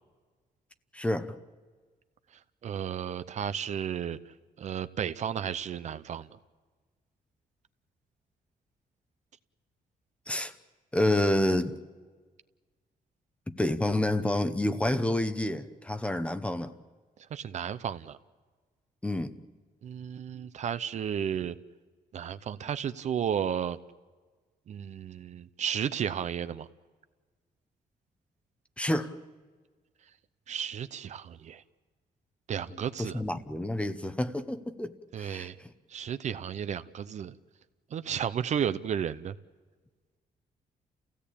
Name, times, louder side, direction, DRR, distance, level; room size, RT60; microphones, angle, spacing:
voice 1, 0.9-1.4 10.3-10.5 10.9-11.8 13.5-16.7 19.0-19.4 28.8-29.1 33.0-34.9 35.2-35.5, left 1 dB, 10° left, 0.8 m, -28 dB
voice 2, 2.6-4.2 4.6-6.3 17.3-18.2 19.8-21.6 22.1-23.8 24.7-26.7 30.5-31.6 32.5-33.2 35.1-35.6 35.9-37.3 37.9-39.3, right 8 dB, 50° right, 0.7 m, -33 dB
30.0 x 16.5 x 8.5 m
wide cardioid pair, 180°, 16 cm